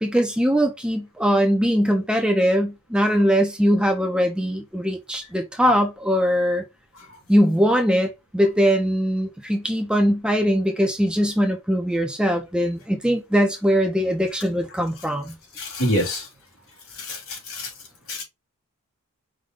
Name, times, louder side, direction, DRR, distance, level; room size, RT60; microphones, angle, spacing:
voice 1, 0.0-6.6 7.3-15.3, equal, 5° right, 0.5 m, -21 dB
voice 2, 15.6-16.3 17.0-17.7 18.1-18.2, equal, 70° left, 2.4 m, -26 dB
5.0 x 2.2 x 3.7 m
head